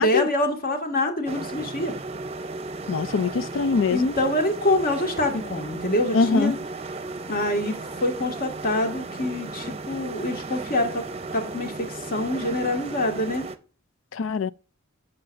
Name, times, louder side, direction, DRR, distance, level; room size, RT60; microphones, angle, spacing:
voice 1, 0.0-1.9 3.9-6.5 7.3-11.0 11.3-13.5, left 1 dB, 45° left, 1.9 m, -25 dB
sound 1, 1.3-13.6, right 3 dB, 30° right, 0.7 m, -35 dB
voice 2, 2.9-4.1 6.1-6.6 14.1-14.5, left 5 dB, 70° left, 0.4 m, -23 dB
11.0 x 6.7 x 2.5 m
head